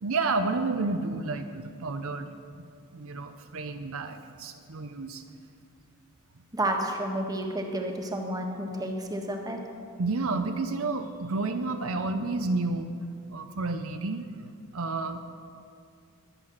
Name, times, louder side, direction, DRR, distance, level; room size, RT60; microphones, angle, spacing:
voice 1, 0.0-2.3 2.5-2.6 2.9-5.2 10.0-12.9 13.3-14.3 14.7-15.2, right 3 dB, 65° right, 7 dB, 0.7 m, -30 dB
voice 2, 6.5-9.6, right 1 dB, 15° right, 2 dB, 1.5 m, -31 dB
21.5 x 7.7 x 6.4 m, 2.4 s
head